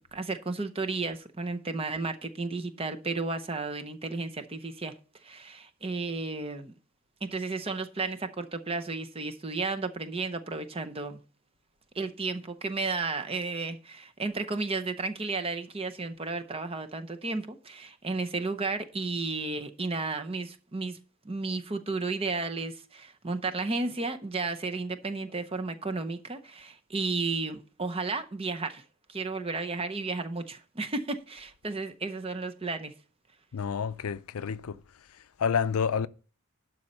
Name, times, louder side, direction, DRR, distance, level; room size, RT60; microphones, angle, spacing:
voice 1, 0.0-4.9 5.2-6.7 7.2-11.2 11.9-21.0 21.2-28.8 29.1-32.9, right 3 dB, 25° right, 0.7 m, -33 dB
voice 2, 33.5-34.8 35.4-36.1, left 6 dB, 75° left, 0.5 m, -29 dB
11.5 x 4.3 x 6.6 m
head